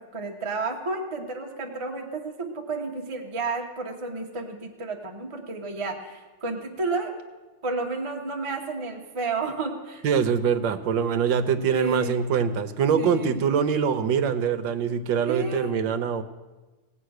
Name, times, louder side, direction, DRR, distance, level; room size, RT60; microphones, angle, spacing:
voice 1, 0.1-7.1 7.6-10.0 11.7-12.1 13.0-13.4 15.3-15.7, right 3 dB, 25° right, 1 dB, 0.7 m, -31 dB
voice 2, 10.0-16.2, right 7 dB, 70° right, 9 dB, 1.3 m, -24 dB
17.5 x 8.3 x 6.4 m, 1.2 s
omnidirectional pair, 2.3 m